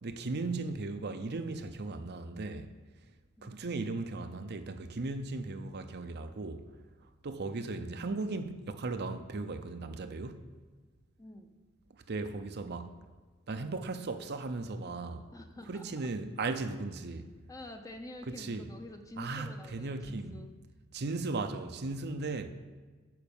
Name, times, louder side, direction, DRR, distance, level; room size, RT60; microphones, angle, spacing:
voice 1, 0.0-2.7 3.4-6.7 7.2-10.5 12.1-12.9 13.5-15.3 15.7-17.3 18.3-18.7 19.2-20.4 20.9-22.5, right 3 dB, 50° right, 0.7 m, -37 dB
voice 2, 11.2-11.5 15.3-15.9 16.5-16.6 17.1-20.5, left 1 dB, 15° left, 0.8 m, -48 dB
9.2 x 5.9 x 7.1 m
head